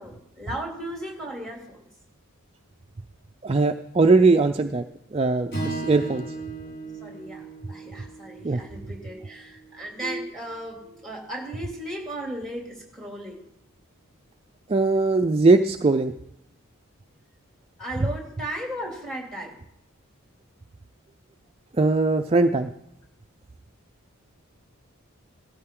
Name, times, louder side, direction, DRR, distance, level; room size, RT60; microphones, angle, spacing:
voice 1, 0.0-1.8 7.0-13.4 17.8-19.6, right 1 dB, ahead, 0 dB, 2.8 m, -36 dB
voice 2, 3.4-4.9 5.1-6.3 8.4-8.6 10.0-10.2 14.7-16.1 18.0-18.1 21.7-22.7, right 3 dB, 25° right, 5 dB, 0.4 m, -20 dB
Strum, 5.5-9.8, right 3 dB, 50° left, 5.6 m, -36 dB
17.0 x 14.0 x 3.8 m, 0.81 s
head